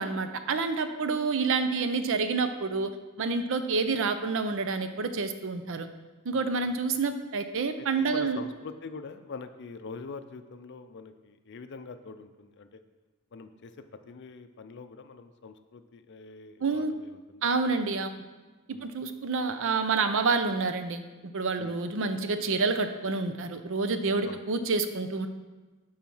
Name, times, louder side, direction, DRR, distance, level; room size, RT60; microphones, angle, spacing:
voice 1, 0.0-2.9 3.2-5.9 6.3-8.4 16.6-16.9 17.4-18.1 18.7-25.3, right 4 dB, 60° right, 9 dB, 0.6 m, -28 dB
voice 2, 6.3-6.7 7.8-12.7 13.3-17.6 17.8-18.0 18.7-18.9 21.6-21.8 24.2-24.4, left 4 dB, 55° left, 9 dB, 0.5 m, -44 dB
7.4 x 4.8 x 5.5 m, 1.2 s
head